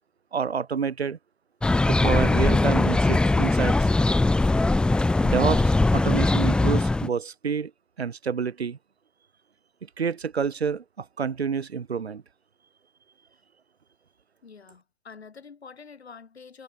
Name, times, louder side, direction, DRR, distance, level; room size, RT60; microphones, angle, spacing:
voice 1, 0.3-1.2 1.9-3.9 5.2-7.7 8.0-8.8 10.0-12.2, right 6 dB, 85° right, 2.5 m, -28 dB
sound 1, 1.6-7.1, left 2 dB, 5° left, 0.6 m, -21 dB
voice 2, 14.4-16.6, left 5 dB, 85° left, 5.7 m, -46 dB
hypercardioid pair, 125°, 31 cm